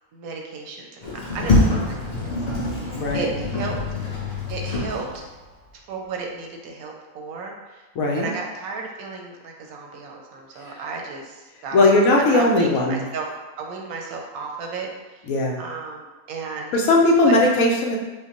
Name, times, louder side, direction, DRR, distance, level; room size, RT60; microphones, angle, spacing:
voice 1, 0.1-2.4 2.7-3.8 4.5-5.2 5.9-7.8 8.1-13.3 13.6-15.2 15.6-16.8 17.2-17.3, right 4 dB, 85° right, 1 dB, 1.1 m, -34 dB
Sliding door, 1.0-5.5, left 2 dB, 40° left, 0.6 m, -24 dB
voice 2, 2.9-3.3 8.0-8.3 11.7-13.0 15.3-15.6 16.7-18.0, left 2 dB, 80° left, 0 dB, 1.1 m, -18 dB
5.0 x 2.1 x 2.9 m, 1.2 s
omnidirectional pair, 1.5 m